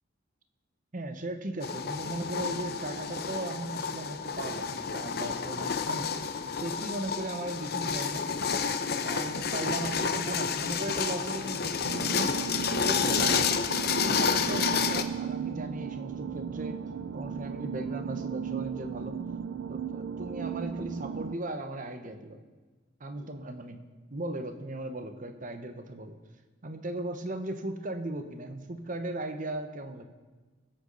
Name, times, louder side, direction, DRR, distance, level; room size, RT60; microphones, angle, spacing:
voice 1, 0.9-6.1 6.5-8.3 9.0-12.4 12.8-13.4 14.0-16.8 17.1-19.2 19.7-22.4 23.0-23.8 24.1-26.2 26.6-30.0, right 1 dB, 45° right, 7 dB, 1.0 m, -37 dB
sound 1, 1.6-15.0, left 6 dB, 55° left, 0.7 m, -30 dB
sound 2, 11.8-21.4, right 7 dB, 85° right, 0.4 m, -36 dB
21.5 x 8.3 x 4.0 m, 1.3 s
head